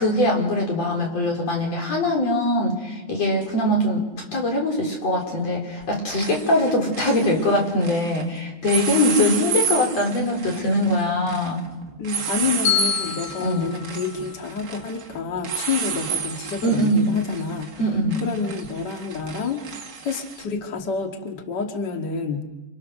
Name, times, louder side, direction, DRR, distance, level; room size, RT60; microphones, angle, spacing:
voice 1, 0.0-4.0 4.3-11.6 13.4-13.7 16.6-17.1 17.8-18.2, left 1 dB, 35° left, 0 dB, 5.1 m, -22 dB
sound 1, 3.4-3.5 5.2-5.5 5.8-8.2 8.6-20.4, right 7 dB, 55° right, 1.3 m, -31 dB
voice 2, 12.0-17.7 18.2-22.4, left 5 dB, 65° left, 4 dB, 1.0 m, -29 dB
Bell, 12.7-14.8, left 10 dB, 85° left, 7.7 m, -28 dB
29.0 x 27.0 x 6.5 m, 1.2 s
omnidirectional pair, 5.3 m